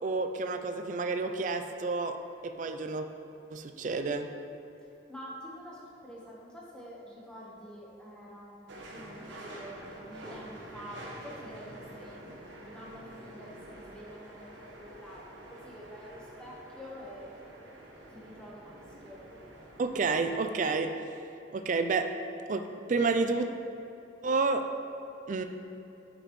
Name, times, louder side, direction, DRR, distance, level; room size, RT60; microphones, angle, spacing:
voice 1, 0.0-3.1 3.5-4.3 19.8-21.0 21.5-22.1 22.5-23.5 24.2-24.7 25.3-25.4, right 4 dB, 40° right, 7 dB, 0.3 m, -30 dB
voice 2, 5.1-12.2 12.6-17.3 18.1-19.3, equal, 5° left, -5 dB, 1.1 m, -47 dB
sound 1, 8.7-20.6, right 1 dB, 75° right, 1.1 m, -48 dB
9.8 x 5.2 x 3.1 m, 2.8 s
head